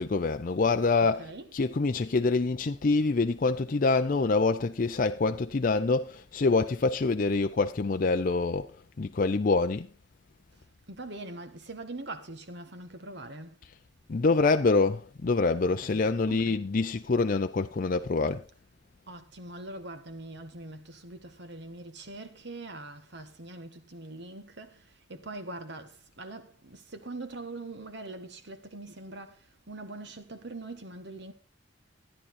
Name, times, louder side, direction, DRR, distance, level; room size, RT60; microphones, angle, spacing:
voice 1, 0.0-8.7 9.0-9.9 14.1-18.4, left 3 dB, 45° left, 0.5 m, -26 dB
voice 2, 1.0-1.6 10.9-13.6 15.6-16.6 19.1-31.3, right 2 dB, 60° right, 1.4 m, -43 dB
13.5 x 10.0 x 4.2 m
head